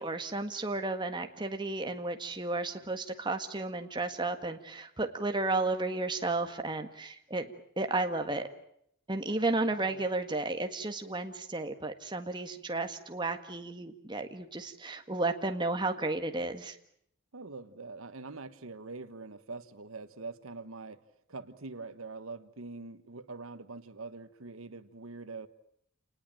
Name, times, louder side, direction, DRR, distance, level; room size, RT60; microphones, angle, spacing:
voice 1, 0.0-7.5 7.8-8.5 9.1-16.8, right 2 dB, 20° right, 6 dB, 1.7 m, -33 dB
voice 2, 17.3-21.0 21.3-25.5, right 3 dB, 80° right, 12 dB, 1.3 m, -44 dB
28.5 x 20.0 x 9.0 m, 0.72 s
head